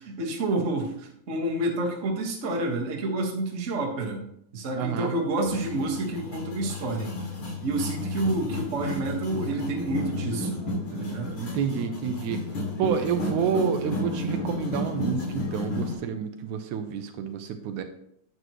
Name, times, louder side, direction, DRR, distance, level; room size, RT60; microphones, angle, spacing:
voice 1, 0.0-4.2 4.5-7.2 7.6-10.6 10.9-11.4, right 2 dB, 35° right, -1 dB, 1.2 m, -29 dB
voice 2, 4.8-5.1 11.3-12.4 12.8-17.8, right 7 dB, 80° right, 7 dB, 2.1 m, -29 dB
sound 1, 5.4-15.9, left 2 dB, 65° left, 3.8 m, -32 dB
10.0 x 7.9 x 3.1 m, 0.73 s
omnidirectional pair, 3.5 m